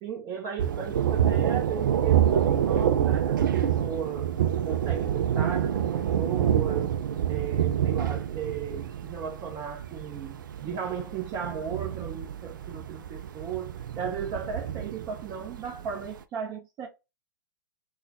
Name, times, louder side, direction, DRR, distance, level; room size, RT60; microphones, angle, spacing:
voice 1, 0.0-4.3 4.6-6.9 7.3-16.9, right 7 dB, 30° right, 0.9 m, -36 dB
Thunder, 0.6-16.1, right 10 dB, 65° right, 0.4 m, -27 dB
3.7 x 2.2 x 2.9 m
figure-of-eight pair, 105°, 11 cm